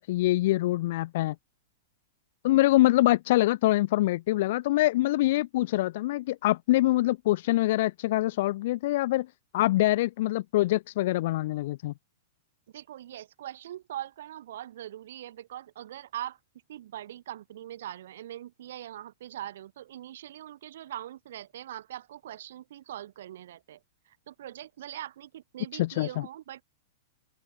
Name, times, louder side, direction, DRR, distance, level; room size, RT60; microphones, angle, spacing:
voice 1, 0.0-1.3 2.4-9.3 9.5-11.9 25.7-26.3, left 17 dB, 50° left, 0.7 m, -24 dB
voice 2, 12.7-16.4 16.7-23.8 24.1-26.6, right 12 dB, 65° right, 2.2 m, -42 dB
open air
supercardioid pair, 165°, 0 cm